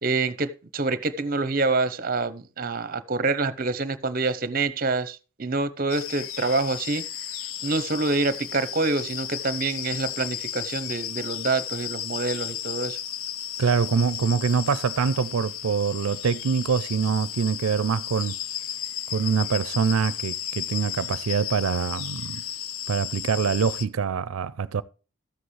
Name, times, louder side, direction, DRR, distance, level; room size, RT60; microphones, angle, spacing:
voice 1, 0.0-7.0 7.6-13.0, right 3 dB, 45° right, 0.7 m, -26 dB
sound 1, 5.9-23.9, left 10 dB, 85° left, 0.7 m, -34 dB
voice 2, 13.6-18.4 19.1-22.4 22.9-24.8, right 6 dB, 85° right, 0.4 m, -24 dB
13.0 x 7.8 x 3.2 m
head